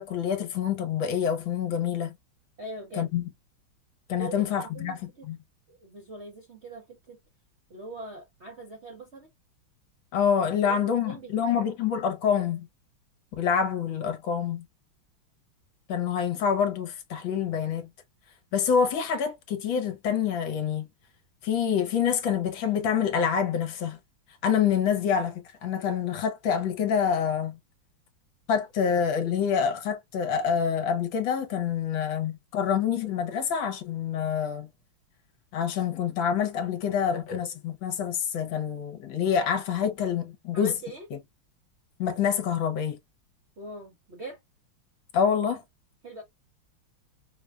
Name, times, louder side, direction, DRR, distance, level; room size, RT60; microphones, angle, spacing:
voice 1, 0.0-2.1 3.0-3.2 4.1-5.4 10.1-12.7 13.4-14.6 15.9-17.9 18.5-20.9 21.4-24.0 24.4-27.6 28.5-34.7 35.5-40.7 42.0-43.0 45.1-45.6, left 7 dB, 70° left, 1.4 m, -26 dB
voice 2, 2.6-3.1 4.2-5.3 5.7-7.2 7.7-9.3 10.5-11.7 40.5-41.1 43.6-44.4 46.0-46.2, right 2 dB, 60° right, 0.7 m, -42 dB
4.9 x 2.2 x 2.3 m
omnidirectional pair, 2.3 m